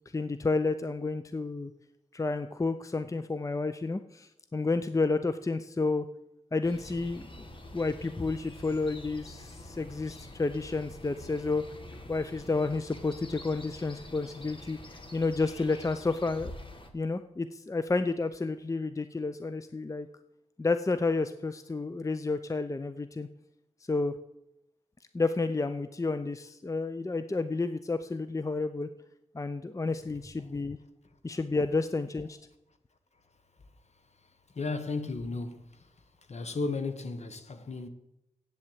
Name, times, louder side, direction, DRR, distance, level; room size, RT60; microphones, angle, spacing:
voice 1, 0.1-1.7 2.1-6.1 6.5-7.4 7.7-11.6 12.1-16.5 16.9-20.1 20.6-23.3 23.9-24.2 25.1-28.9 29.3-30.8 31.2-32.4, left 3 dB, 25° left, 0.6 m, -30 dB
sound 1, 6.6-16.9, left 1 dB, 40° left, 1.7 m, -46 dB
voice 2, 34.5-35.9 36.3-37.9, left 3 dB, 55° left, 1.3 m, -34 dB
8.7 x 7.5 x 8.0 m
cardioid pair, 55°, 14 cm